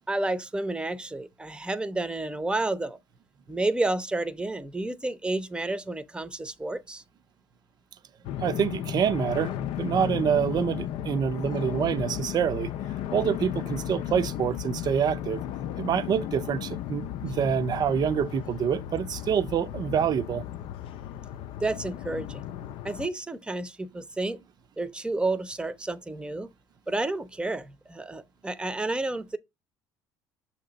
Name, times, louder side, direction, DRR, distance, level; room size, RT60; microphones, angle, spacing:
voice 1, 0.1-3.0 3.5-7.0 21.6-22.4 22.8-24.4 24.8-26.5 26.9-29.4, right 2 dB, 10° right, 0.7 m, -30 dB
sound 1, 8.2-23.1, left 11 dB, 65° left, 0.5 m, -35 dB
voice 2, 8.4-9.5 9.8-12.7 13.1-15.4 15.8-20.4, right 7 dB, 45° right, 0.6 m, -26 dB
6.4 x 2.9 x 5.1 m
supercardioid pair, 80°, 10 cm